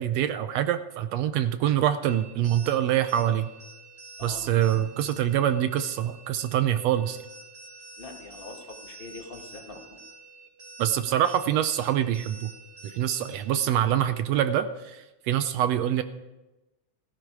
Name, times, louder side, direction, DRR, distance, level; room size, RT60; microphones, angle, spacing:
voice 1, 0.0-3.5 4.2-7.2 10.8-12.5 12.8-16.0, right 11 dB, 75° right, 11 dB, 1.6 m, -25 dB
sound 1, 2.0-13.6, right 3 dB, 20° right, 3.9 m, -48 dB
voice 2, 8.0-10.0, left 3 dB, 30° left, 3 dB, 1.1 m, -43 dB
16.5 x 15.0 x 4.8 m, 1.0 s
omnidirectional pair, 3.5 m